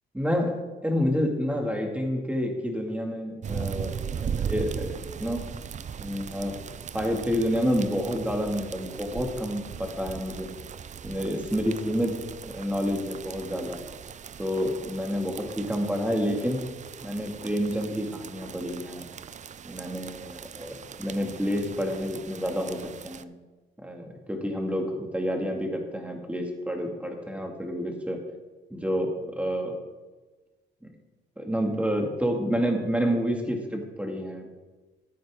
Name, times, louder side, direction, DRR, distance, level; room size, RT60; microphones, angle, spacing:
voice 1, 0.1-4.9 5.2-5.6 6.0-6.6 6.9-10.5 11.0-13.8 14.4-16.6 17.0-19.1 19.6-23.3 23.8-28.2 28.7-29.8 31.4-34.5, equal, 5° right, 2 dB, 2.3 m, -29 dB
sound 1, 3.4-23.2, right 7 dB, 35° right, 0.5 m, -38 dB
14.5 x 9.3 x 3.7 m, 1.3 s
cardioid pair, 90°, 20 cm